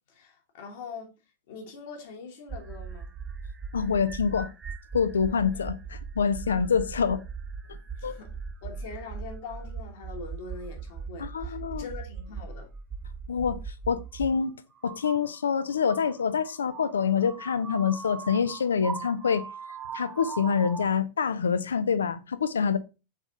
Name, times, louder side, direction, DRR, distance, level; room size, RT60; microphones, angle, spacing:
voice 1, 0.1-1.1 1.5-3.1 5.5-5.6 7.1-7.2 8.0-8.3 8.6-12.7, left 4 dB, 55° left, 1.2 m, -43 dB
sound 1, 2.5-14.3 14.8-20.9, right 5 dB, 20° right, 0.4 m, -39 dB
voice 2, 3.7-4.5 4.9-7.2 8.0-8.2 11.2-11.8 13.3-13.6 13.9-14.5 14.8-19.4 19.9-22.8, left 6 dB, 70° left, 0.4 m, -26 dB
4.0 x 3.4 x 3.8 m
figure-of-eight pair, 90°, 0 cm